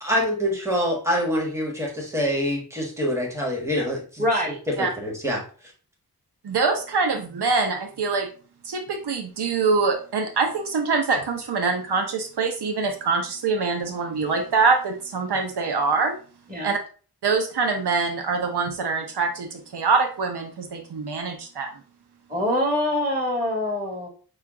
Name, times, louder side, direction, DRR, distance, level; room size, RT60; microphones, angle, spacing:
voice 1, 0.0-4.2 4.8-5.4, equal, 5° right, -1 dB, 1.5 m, -25 dB
voice 2, 4.2-4.6 16.5-16.7 22.3-24.1, left 1 dB, 25° right, -2 dB, 2.3 m, -24 dB
voice 3, 6.4-8.3 8.6-16.1 16.6-16.8 17.2-21.7, right 4 dB, 85° right, 4 dB, 0.7 m, -24 dB
5.6 x 2.4 x 3.5 m, 0.39 s
wide cardioid pair, 70°, 39 cm